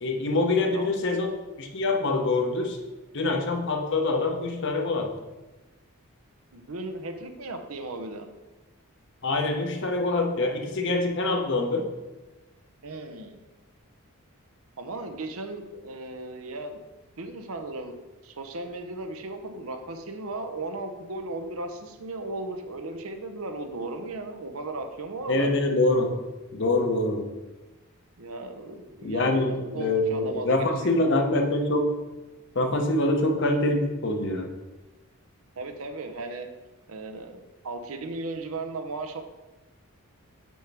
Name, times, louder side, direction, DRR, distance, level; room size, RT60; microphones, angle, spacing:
voice 1, 0.0-2.8 3.1-5.1 9.2-11.9 25.3-26.2 26.5-27.3 29.0-32.0 32.5-34.5, left 2 dB, 55° left, 4 dB, 0.8 m, -25 dB
voice 2, 6.5-8.3 12.8-13.4 14.8-16.8 17.2-18.0 18.2-25.5 28.2-30.7 31.0-31.1 35.6-36.5 36.9-39.2, right 2 dB, 75° right, 6 dB, 0.7 m, -36 dB
7.1 x 6.2 x 3.4 m, 1.1 s
head